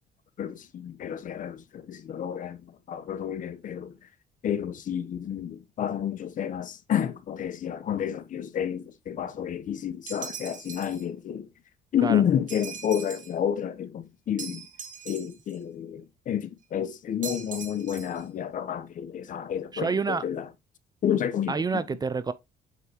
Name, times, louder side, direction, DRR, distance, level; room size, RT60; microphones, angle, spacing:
voice 1, 0.4-2.6 2.9-3.9 4.4-11.5 11.9-14.6 15.0-20.5 21.0-21.8, left 9 dB, 50° left, 1.0 m, -30 dB
sound 1, 10.1-11.0 12.5-13.4 14.4-15.6 17.2-18.2, right 7 dB, 50° right, 2.1 m, -40 dB
voice 2, 19.7-20.2 21.5-22.3, right 5 dB, 25° right, 0.5 m, -28 dB
8.3 x 5.1 x 3.0 m
cardioid pair, 110°, 17 cm